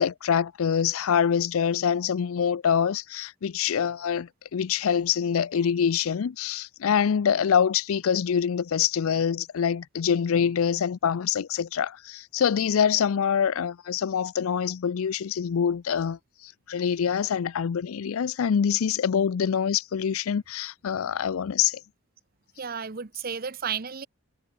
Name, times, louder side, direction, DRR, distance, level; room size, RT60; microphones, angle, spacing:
voice 1, 0.0-21.8, left 7 dB, 75° left, 0.4 m, -25 dB
voice 2, 22.6-24.1, right 6 dB, 45° right, 0.8 m, -32 dB
head